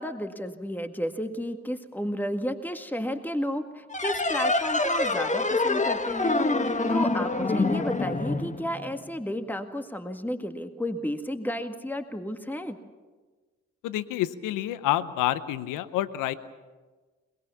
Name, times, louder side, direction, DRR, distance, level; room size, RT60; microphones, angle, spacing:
voice 1, 0.0-12.8, equal, 5° left, 7 dB, 1.9 m, -32 dB
sound 1, 3.9-9.2, left 2 dB, 25° left, 1.5 m, -26 dB
voice 2, 13.8-16.3, left 13 dB, 85° left, 15 dB, 0.8 m, -28 dB
23.5 x 21.5 x 7.2 m, 1.3 s
hypercardioid pair, 45°, 31 cm